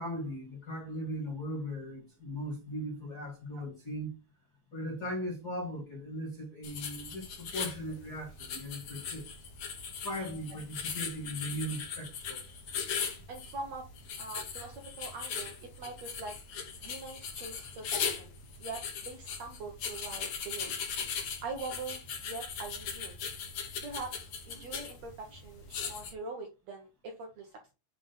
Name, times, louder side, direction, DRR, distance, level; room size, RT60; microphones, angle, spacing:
voice 1, 0.0-4.1 4.7-9.3 10.0-12.4, equal, 30° left, 2.1 m, -38 dB
sound 1, 6.6-26.1, left 6 dB, 55° left, 2.0 m, -39 dB
voice 2, 13.3-13.9 14.2-16.3 16.8-18.3 18.6-20.8 21.4-22.0 22.3-23.2 23.8-27.7, right 3 dB, 65° right, 1.7 m, -43 dB
7.7 x 3.6 x 5.4 m
omnidirectional pair, 4.5 m